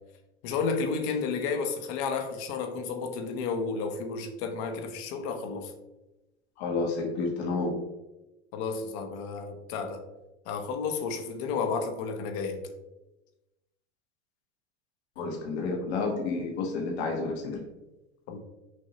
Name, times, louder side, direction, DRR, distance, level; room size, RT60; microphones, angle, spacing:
voice 1, 0.4-5.7 8.5-10.0 10.5-12.6 18.3-18.4, left 5 dB, 45° left, 0.7 m, -32 dB
voice 2, 6.6-7.7 15.2-17.6, left 3 dB, 70° left, 1.0 m, -30 dB
6.0 x 2.7 x 2.8 m
hypercardioid pair, 125°, 34 cm